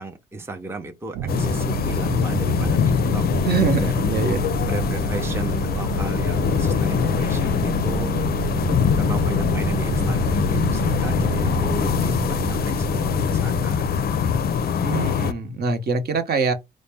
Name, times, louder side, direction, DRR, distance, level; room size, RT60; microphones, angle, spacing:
voice 1, 0.0-2.8 3.1-3.5 3.8-4.1 4.6-8.2 8.9-14.0, right 2 dB, 10° right, 0.6 m, -35 dB
sound 1, 1.1-14.7, right 7 dB, 80° right, 0.5 m, -29 dB
sound 2, 1.3-15.3, left 8 dB, 50° left, 0.5 m, -23 dB
voice 2, 3.5-4.4 14.8-16.5, right 5 dB, 50° right, 1.0 m, -24 dB
4.0 x 2.1 x 3.4 m
cardioid pair, 90°, 20 cm